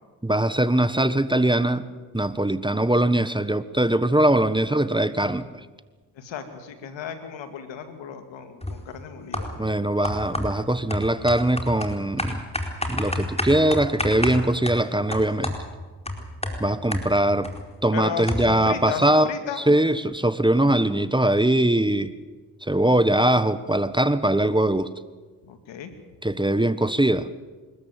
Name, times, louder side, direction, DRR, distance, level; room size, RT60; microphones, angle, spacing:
voice 1, 0.2-1.8 2.1-5.5 9.6-12.4 12.9-15.6 16.6-17.5 17.8-19.3 19.7-22.1 22.6-24.9 26.2-27.3, right 1 dB, 10° right, 13 dB, 1.4 m, -21 dB
voice 2, 6.1-9.6 17.9-19.6 25.4-25.9, left 7 dB, 80° left, 8 dB, 2.5 m, -35 dB
sound 1, 8.6-8.9 9.3-9.7 10.0-17.7 17.9-18.0 18.3-18.7, left 1 dB, 15° left, 4.5 m, -30 dB
26.0 x 13.5 x 9.1 m, 1.4 s
supercardioid pair, 40°, 44 cm